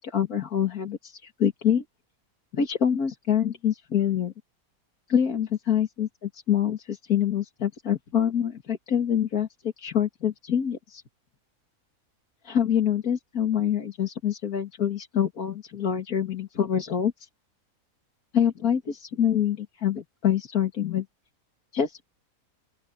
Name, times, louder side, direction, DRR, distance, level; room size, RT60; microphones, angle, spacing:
voice 1, 0.0-1.8 2.5-4.3 5.1-6.1 6.3-11.0 12.4-17.1 18.3-21.1 21.7-22.0, left 9 dB, 85° left, 2.4 m, -26 dB
open air
omnidirectional pair, 1.5 m